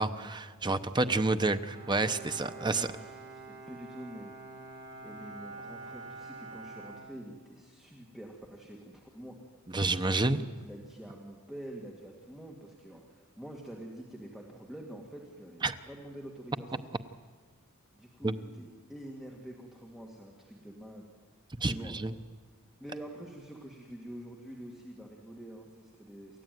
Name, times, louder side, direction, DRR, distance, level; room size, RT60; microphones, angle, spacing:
voice 1, 0.0-2.9 9.7-10.4 15.6-15.7 18.2-18.3 21.6-22.1, right 2 dB, 20° right, 10 dB, 0.9 m, -29 dB
voice 2, 0.7-1.1 2.5-4.4 5.0-9.4 10.1-16.9 17.9-21.1 21.6-22.0 22.8-26.4, right 1 dB, ahead, -1 dB, 2.2 m, -46 dB
Bowed string instrument, 1.6-7.8, right 3 dB, 55° right, 7.3 m, -47 dB
28.5 x 14.5 x 9.3 m, 1.5 s
head